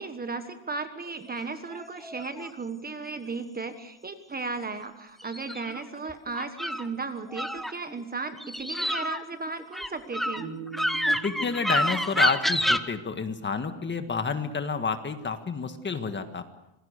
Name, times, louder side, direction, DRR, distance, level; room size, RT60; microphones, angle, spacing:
voice 1, 0.0-10.5, right 4 dB, 20° right, 9 dB, 1.4 m, -35 dB
sound 1, 1.5-2.5 5.2-6.9 7.3-8.0 8.4-12.8, equal, ahead, 0.8 m, -28 dB
sound 2, 10.4-13.5, right 7 dB, 65° right, 7.0 m, -44 dB
voice 2, 11.2-16.4, left 5 dB, 20° left, 8 dB, 1.7 m, -29 dB
27.0 x 21.5 x 6.6 m, 0.87 s
cardioid pair, 155°, 49 cm